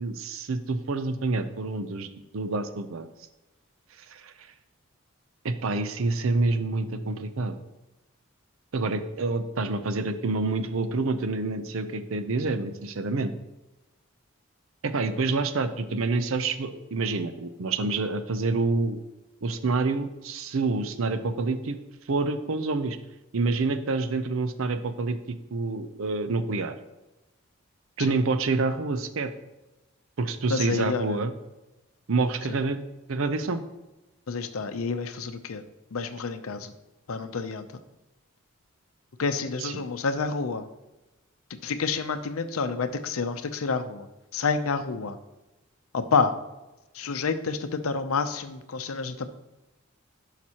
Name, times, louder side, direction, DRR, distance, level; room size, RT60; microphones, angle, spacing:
voice 1, 0.0-2.1 2.3-3.1 4.1-4.3 5.4-7.6 8.7-13.3 14.8-19.0 19.4-21.8 22.1-23.0 23.3-25.2 25.5-26.7 28.0-29.3 30.2-31.3 32.1-32.8 33.1-33.6 39.6-39.8, right 3 dB, 75° right, 10 dB, 0.6 m, -27 dB
voice 2, 30.5-31.2 32.5-32.6 34.3-35.6 35.9-36.7 37.1-37.8 39.2-40.6 41.6-45.2 45.9-46.4 46.9-49.3, left 4 dB, 85° left, 10 dB, 0.6 m, -29 dB
10.5 x 5.8 x 2.9 m, 1.0 s
head